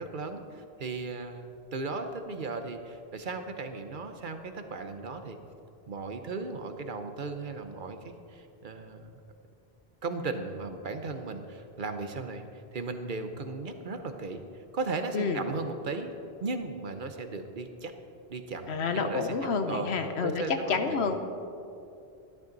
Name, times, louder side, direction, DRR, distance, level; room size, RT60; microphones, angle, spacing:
voice 1, 0.0-5.4 5.9-9.1 10.0-12.4 12.7-14.4 14.7-16.1 16.4-17.9 18.3-19.3 19.7-19.9 20.2-21.0, right 3 dB, 55° right, 7 dB, 0.9 m, -36 dB
voice 2, 18.7-21.2, left 4 dB, 85° left, 7 dB, 1.2 m, -29 dB
13.5 x 11.5 x 4.0 m, 2.6 s
omnidirectional pair, 1.1 m